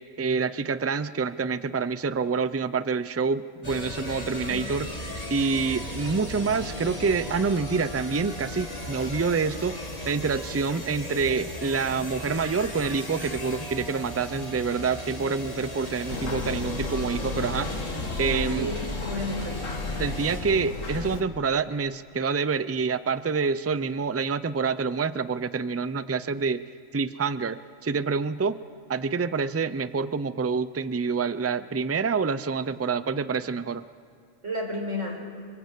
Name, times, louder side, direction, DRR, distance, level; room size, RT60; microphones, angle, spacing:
voice 1, 0.2-18.7 20.0-26.6 26.9-28.6 28.9-33.8, right 5 dB, 25° right, 14 dB, 0.3 m, -27 dB
sound 1, 3.6-20.4, left 1 dB, 30° left, 2.5 m, -37 dB
sound 2, 16.1-21.2, left 3 dB, 90° left, 2.1 m, -33 dB
voice 2, 18.2-18.8 19.0-19.6 34.4-35.3, left 1 dB, 70° right, 1 dB, 5.3 m, -32 dB
27.0 x 24.0 x 8.4 m, 2.4 s
omnidirectional pair, 1.3 m